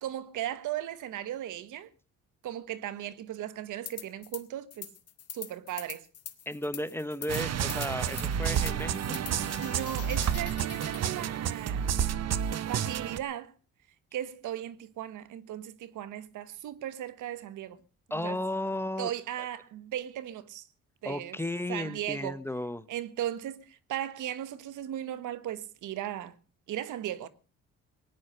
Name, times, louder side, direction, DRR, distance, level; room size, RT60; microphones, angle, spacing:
voice 1, 0.0-1.9 2.4-4.9 5.3-6.1 9.6-11.9 12.7-13.5 14.1-17.8 18.1-18.4 19.0-20.7 21.0-21.4 21.7-22.4 22.9-26.3 26.7-27.3, right 11 dB, 80° right, 1.4 m, -37 dB
sound 1, 3.9-4.4 4.7-11.1, left 9 dB, 55° left, 2.0 m, -44 dB
voice 2, 6.5-9.2 18.1-19.1 21.0-22.9, left 1 dB, 10° left, 0.9 m, -34 dB
sound 2, 7.3-13.2, right 9 dB, 55° right, 1.1 m, -30 dB
18.5 x 10.0 x 6.7 m
cardioid pair, 90°, 30 cm